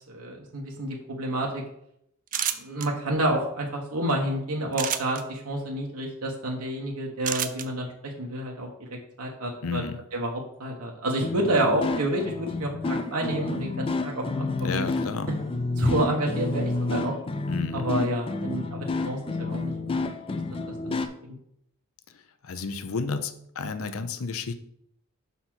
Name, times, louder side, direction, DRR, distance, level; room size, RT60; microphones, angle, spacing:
voice 1, 0.1-1.6 2.6-8.9 9.2-9.8 10.1-14.9 15.8-17.1 17.7-20.4 20.8-21.0 21.2-21.3, right 1 dB, 80° right, 0 dB, 1.1 m, -29 dB
sound 1, 2.3-2.9 4.7-5.2 7.2-7.7, right 10 dB, 40° right, 0.4 m, -28 dB
voice 2, 9.6-10.0 14.6-15.3 17.5-17.9 22.1-24.5, left 4 dB, 65° left, 9 dB, 0.6 m, -32 dB
sound 2, 11.2-21.1, left 2 dB, 25° left, 0.4 m, -30 dB
5.8 x 4.1 x 6.1 m, 0.75 s
head